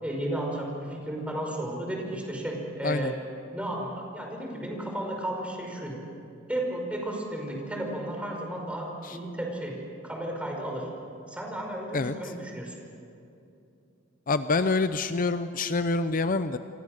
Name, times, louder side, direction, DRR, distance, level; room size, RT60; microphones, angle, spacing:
voice 1, 0.0-3.1 3.5-6.0 6.5-9.8 10.0-10.9 11.3-12.7, right 1 dB, 5° right, 0 dB, 5.3 m, -33 dB
voice 2, 14.3-16.6, left 3 dB, 45° left, 11 dB, 0.6 m, -26 dB
29.5 x 24.0 x 6.6 m, 2.6 s
head